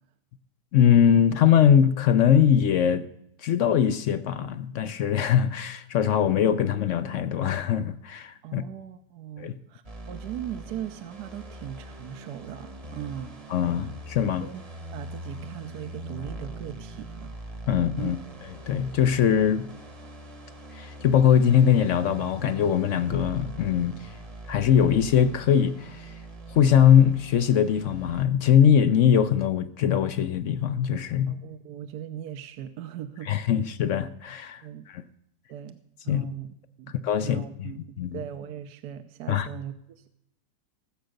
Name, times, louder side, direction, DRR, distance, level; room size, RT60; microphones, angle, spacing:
voice 1, 0.7-3.1 3.4-8.6 9.4-9.5 13.5-14.5 17.7-18.2 18.7-19.7 20.7-24.1 24.5-26.1 26.5-31.4 33.3-35.0 36.1-36.2 37.0-37.7 38.0-38.2 39.3-39.5, left 9 dB, 65° left, 0.8 m, -22 dB
voice 2, 8.4-13.4 13.7-13.9 14.4-14.6 14.9-17.3 18.0-18.1 31.3-33.3 34.6-34.8 35.5-35.8 36.0-36.9 37.2-40.1, right 10 dB, 70° right, 1.3 m, -39 dB
sound 1, 9.8-28.3, right 1 dB, 25° right, 1.0 m, -42 dB
17.0 x 7.9 x 6.5 m
omnidirectional pair, 1.8 m